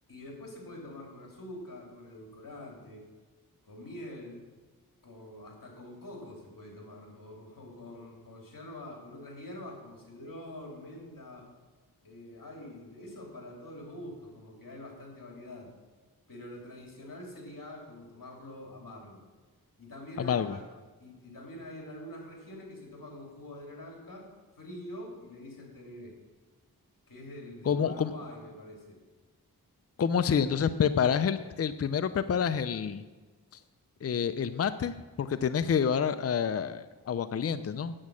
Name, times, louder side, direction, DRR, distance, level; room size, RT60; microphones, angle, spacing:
voice 1, 0.1-3.0 3.6-4.4 5.0-11.5 12.0-15.7 16.3-19.2 19.8-20.6 21.0-24.3 24.6-26.1 27.1-29.0, left 1 dB, 60° left, -1 dB, 3.4 m, -45 dB
voice 2, 20.2-20.6 27.7-28.1 30.0-33.0 34.0-37.9, left 7 dB, 40° left, 12 dB, 0.5 m, -28 dB
8.7 x 8.3 x 6.3 m, 1.3 s
cardioid pair, 50°, 37 cm